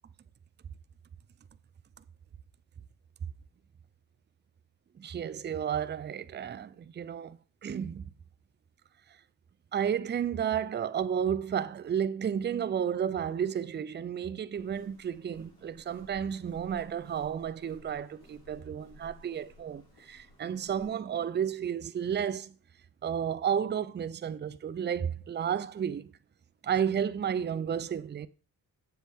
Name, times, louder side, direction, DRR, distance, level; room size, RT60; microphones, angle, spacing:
voice 1, 5.0-8.0 9.1-9.2 9.7-22.5 23.0-26.1 26.6-28.3, right 8 dB, 30° right, 0.4 m, -32 dB
Walk footsteps, 14.5-20.9, left 1 dB, 85° left, 4.7 m, -57 dB
7.3 x 7.2 x 3.5 m
cardioid pair, 95°, 38 cm